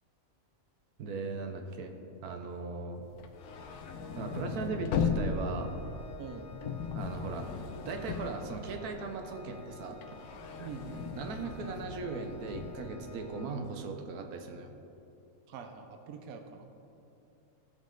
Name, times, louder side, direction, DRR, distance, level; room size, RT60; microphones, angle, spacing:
voice 1, 1.0-1.9 2.2-3.1 4.2-5.7 6.9-7.5 7.8-10.0 11.1-14.7, right 4 dB, 90° right, 5 dB, 1.3 m, -38 dB
sound 1, 3.1-9.2 9.6-12.9, left 6 dB, 85° left, 1.2 m, -37 dB
Organ, 3.3-14.1, left 4 dB, 60° left, 1.1 m, -50 dB
voice 2, 10.6-11.1 15.5-16.8, right 6 dB, 75° right, 5 dB, 1.1 m, -45 dB
16.0 x 5.4 x 3.8 m, 2.7 s
omnidirectional pair, 1.5 m